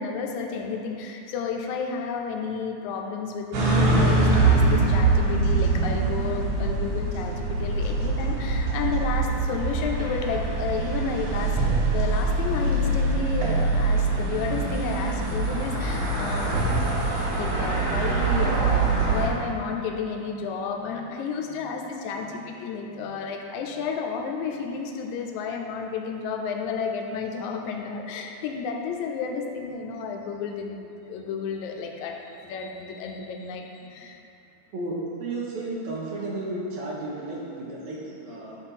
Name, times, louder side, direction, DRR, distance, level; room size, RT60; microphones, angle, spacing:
voice 1, 0.0-11.6 11.9-16.9 17.4-34.2, left 5 dB, 80° left, 2 dB, 1.9 m, -32 dB
sound 1, 3.5-19.3, right 3 dB, 90° right, 2.6 m, -23 dB
voice 2, 35.2-38.6, right 2 dB, 75° right, -4 dB, 2.2 m, -33 dB
8.7 x 3.9 x 4.1 m, 2.7 s
omnidirectional pair, 3.3 m